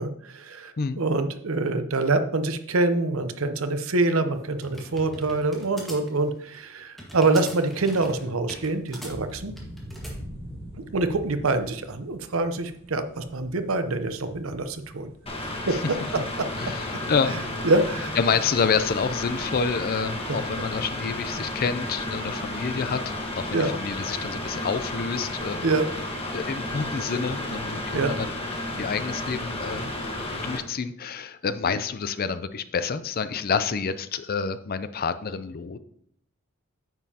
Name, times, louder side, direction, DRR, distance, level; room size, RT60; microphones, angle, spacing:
voice 1, 0.0-9.5 10.9-15.1 15.7-16.5 17.6-18.1 20.3-20.4 23.5-23.7 25.6-25.9 27.9-28.1, right 2 dB, 75° right, 9 dB, 0.8 m, -25 dB
sound 1, 4.0-10.2, equal, ahead, 1.7 m, -42 dB
sound 2, 8.8-21.6, equal, 30° right, 3.2 m, -46 dB
Mechanical fan, 15.3-30.6, left 1 dB, 25° left, 1.3 m, -32 dB
voice 2, 16.6-17.3 18.2-23.0 23.3-25.7 26.3-29.9 30.3-35.8, left 5 dB, 45° left, 12 dB, 0.5 m, -28 dB
9.4 x 7.2 x 2.8 m, 0.69 s
head